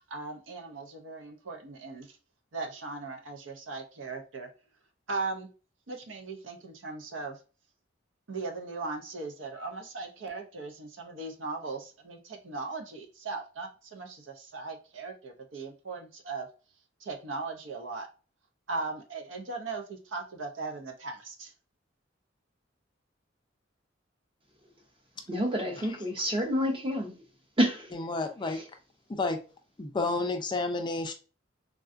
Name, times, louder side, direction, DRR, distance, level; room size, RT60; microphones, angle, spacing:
voice 1, 0.0-2.2 2.5-4.5 5.1-5.5 5.9-7.4 8.3-16.5 17.0-18.1 18.7-21.5, right 3 dB, 75° right, 0.6 m, -38 dB
voice 2, 25.3-27.1 27.6-27.9 28.5-28.6, equal, 30° right, 0.7 m, -28 dB
voice 3, 27.9-28.6 29.1-29.4 29.8-31.1, left 3 dB, 25° left, 0.4 m, -30 dB
3.6 x 2.3 x 2.5 m
head